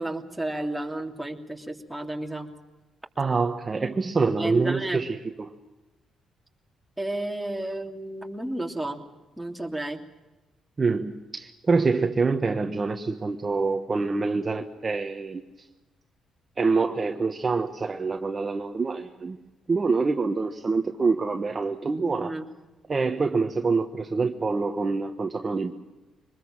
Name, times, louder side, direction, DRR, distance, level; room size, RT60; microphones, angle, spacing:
voice 1, 0.0-2.5 4.4-5.0 7.0-9.0 9.4-10.1 22.2-22.4, right 1 dB, 5° right, 1 dB, 3.0 m, -32 dB
voice 2, 3.2-5.5 10.8-15.7 16.6-19.4 19.7-22.3 22.9-25.7, right 4 dB, 30° right, 4 dB, 1.3 m, -26 dB
24.0 x 20.5 x 7.5 m, 1.1 s
cardioid pair, 90°, 0 cm